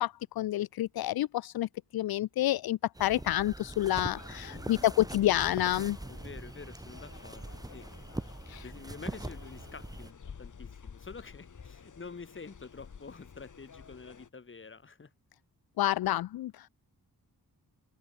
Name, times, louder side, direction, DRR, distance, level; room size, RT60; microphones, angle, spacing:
voice 1, 0.0-6.0 8.5-8.6 15.8-16.7, left 14 dB, 75° left, 0.5 m, -29 dB
sound 1, 2.9-10.1, right 1 dB, 10° right, 1.8 m, -42 dB
sound 2, 4.1-14.3, left 6 dB, 55° left, 6.3 m, -52 dB
voice 2, 4.5-4.9 6.1-7.9 8.6-15.1, left 4 dB, 30° left, 2.7 m, -48 dB
wide cardioid pair, 145°, 37 cm